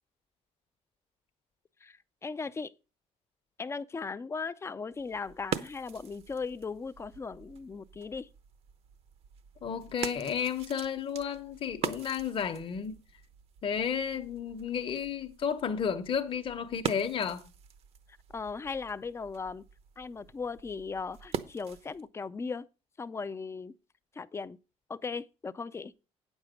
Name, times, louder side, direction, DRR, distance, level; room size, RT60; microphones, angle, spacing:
voice 1, 2.2-2.7 3.6-8.3 18.3-19.6 20.0-22.7 23.0-23.7 24.2-24.6 24.9-25.9, left 4 dB, 20° left, 0.5 m, -37 dB
sound 1, 4.9-22.1, right 8 dB, 55° right, 0.8 m, -43 dB
voice 2, 9.6-13.0 13.6-17.4, left 7 dB, 45° left, 1.0 m, -32 dB
9.0 x 7.2 x 5.1 m
cardioid pair, 130°, 13 cm